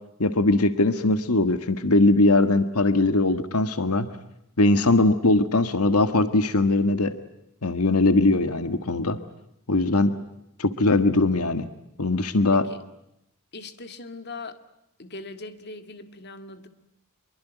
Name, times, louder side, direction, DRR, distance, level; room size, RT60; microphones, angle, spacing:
voice 1, 0.2-4.1 4.6-7.1 7.6-9.2 9.7-10.1 10.6-11.7 12.0-12.6, left 2 dB, 85° left, 11 dB, 1.6 m, -20 dB
voice 2, 12.5-12.8 13.5-14.6 15.0-16.7, left 3 dB, 50° left, 9 dB, 2.1 m, -40 dB
25.5 x 23.0 x 9.3 m, 0.83 s
head